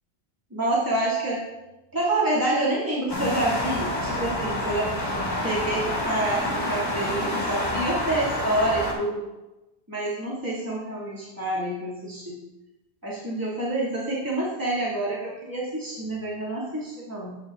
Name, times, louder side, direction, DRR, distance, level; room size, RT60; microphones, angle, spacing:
voice 1, 0.5-1.5 1.9-4.9 5.2-9.2 9.9-12.4 13.0-17.4, right 1 dB, 20° right, -8 dB, 2.6 m, -27 dB
sound 1, 3.1-8.9, left 1 dB, 40° left, 2.6 m, -28 dB
11.5 x 9.0 x 2.5 m, 1.0 s
omnidirectional pair, 1.1 m